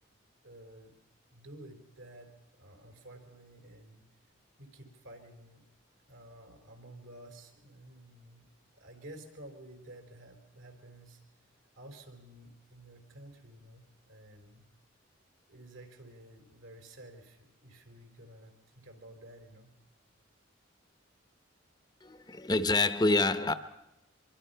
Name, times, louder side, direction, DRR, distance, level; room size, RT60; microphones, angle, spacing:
voice 1, 0.4-1.0 1.3-2.3 2.6-4.1 4.6-5.6 6.1-8.5 8.7-11.2 11.8-14.7 15.5-19.7, right 1 dB, 80° right, 4 dB, 4.2 m, -52 dB
voice 2, 22.0-23.5, left 2 dB, 20° left, 11 dB, 0.7 m, -27 dB
25.0 x 24.0 x 5.6 m, 0.90 s
head